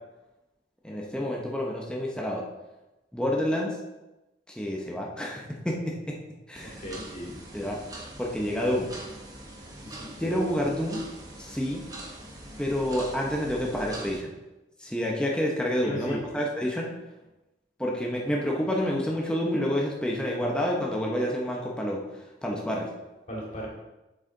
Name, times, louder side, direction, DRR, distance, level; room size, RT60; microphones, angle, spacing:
voice 1, 0.8-2.4 3.1-3.8 4.5-6.2 6.5-6.8 7.5-7.8 8.2-8.9 10.2-11.0 11.4-11.8 12.6-14.3 14.8-16.9 17.8-22.9, equal, 5° left, -2 dB, 0.9 m, -29 dB
sound 1, 6.5-14.2, right 1 dB, 20° right, 1.3 m, -43 dB
voice 2, 6.6-7.3 9.8-10.6 15.8-16.2 23.3-23.7, equal, 45° left, -3 dB, 2.7 m, -37 dB
8.0 x 6.5 x 3.9 m, 1.0 s
head